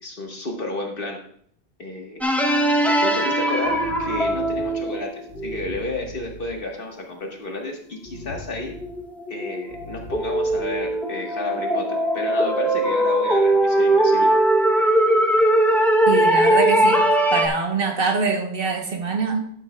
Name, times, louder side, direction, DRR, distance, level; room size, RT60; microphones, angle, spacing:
voice 1, 0.0-1.2 1.8-2.3 2.8-5.1 5.4-8.7 9.3-14.3, left 2 dB, 55° left, 1 dB, 1.6 m, -31 dB
sound 1, 2.2-5.7 7.4-7.5 8.1-17.5, right 1 dB, ahead, 0.6 m, -20 dB
sound 2, 3.6-6.7 8.0-9.2 9.7-10.9, left 1 dB, 85° left, 1.9 m, -41 dB
voice 2, 16.1-17.0 17.3-19.5, right 4 dB, 55° right, 4 dB, 1.2 m, -24 dB
12.0 x 8.1 x 2.3 m, 0.64 s
omnidirectional pair, 1.1 m